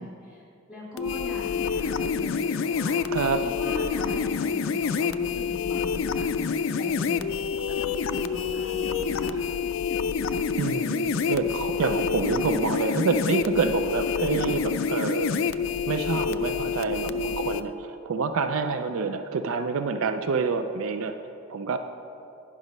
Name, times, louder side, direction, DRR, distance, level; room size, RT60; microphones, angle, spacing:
voice 1, 0.0-6.5 6.7-7.3 7.7-7.8 8.2-9.5, left 1 dB, 5° right, -7 dB, 2.1 m, -40 dB
sound 1, 1.0-17.6, left 6 dB, 65° left, 0.3 m, -27 dB
voice 2, 3.1-3.4 10.6-15.5 15.9-21.2 21.5-21.8, right 4 dB, 70° right, 9 dB, 0.4 m, -27 dB
9.9 x 6.1 x 5.2 m, 2.9 s
head